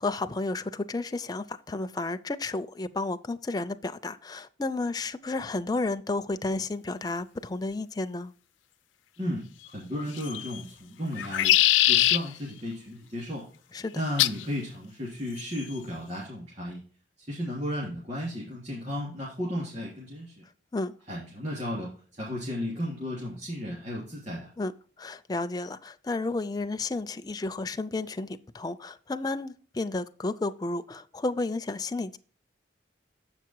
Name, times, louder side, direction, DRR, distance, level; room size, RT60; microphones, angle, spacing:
voice 1, 0.0-8.3 13.7-13.9 20.7-20.9 24.6-24.7 25.0-32.2, left 2 dB, 20° left, 0.4 m, -32 dB
voice 2, 9.7-11.5 11.9-13.5 13.9-16.8 17.2-20.4 21.1-24.5, equal, 40° right, 3.0 m, -34 dB
sound 1, 10.1-10.6 11.1-12.2 14.2-14.4 15.4-15.8, left 14 dB, 90° left, 0.4 m, -22 dB
7.6 x 5.9 x 4.6 m
head